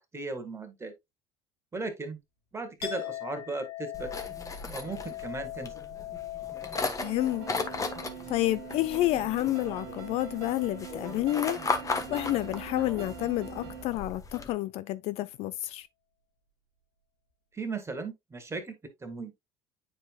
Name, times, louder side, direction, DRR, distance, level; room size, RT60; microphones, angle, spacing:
voice 1, 0.1-0.9 1.7-2.2 2.5-4.1 4.7-5.7 17.5-19.3, right 3 dB, 20° right, 1.9 m, -37 dB
Chink clink, 2.8-10.5 10.8-11.5, left 13 dB, 75° left, 1.6 m, -42 dB
sound 1, 3.9-14.5, left 4 dB, 25° left, 1.3 m, -37 dB
voice 2, 7.0-7.5 8.3-11.6 12.1-15.9, left 16 dB, 55° left, 0.4 m, -29 dB
sound 2, 7.0-13.8, right 10 dB, 75° right, 1.4 m, -43 dB
9.1 x 4.6 x 2.3 m
hypercardioid pair, 70°, 12 cm